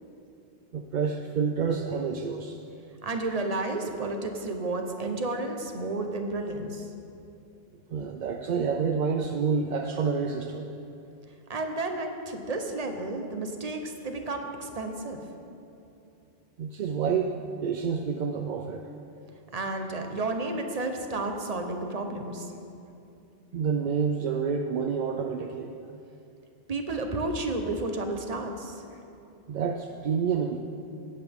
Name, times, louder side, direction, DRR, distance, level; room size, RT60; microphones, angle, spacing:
voice 1, 0.7-2.6 7.9-10.7 16.6-17.3 17.6-18.8 23.5-25.7 29.5-30.6, right 6 dB, 60° right, 4 dB, 0.5 m, -28 dB
voice 2, 3.0-6.9 11.5-15.2 19.5-22.5 26.7-28.8, right 2 dB, 40° right, 4 dB, 0.9 m, -32 dB
17.5 x 8.0 x 3.6 m, 2.7 s
omnidirectional pair, 1.1 m